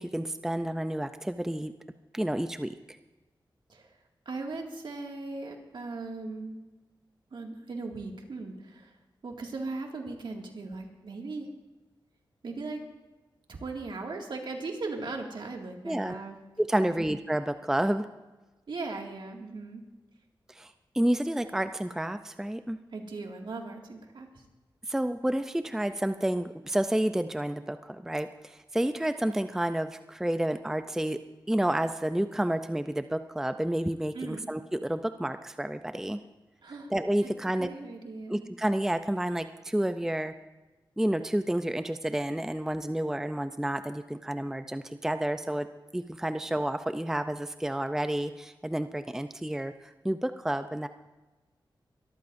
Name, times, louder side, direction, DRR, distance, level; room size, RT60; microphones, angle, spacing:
voice 1, 0.0-1.7 2.1-2.7 15.8-16.2 16.6-18.1 20.5-22.8 24.9-31.2 31.5-36.2 36.9-37.7 38.3-40.3 41.0-45.7 45.9-50.9, right 1 dB, 5° right, 9 dB, 0.5 m, -30 dB
voice 2, 4.3-6.6 7.3-8.9 9.2-11.5 12.4-12.8 13.5-16.4 16.7-17.1 18.7-19.8 22.9-24.4 34.1-34.5 36.6-36.9 37.6-38.5, right 3 dB, 70° right, 1 dB, 2.2 m, -38 dB
22.5 x 13.5 x 2.6 m, 1.1 s
wide cardioid pair, 85°, 8 cm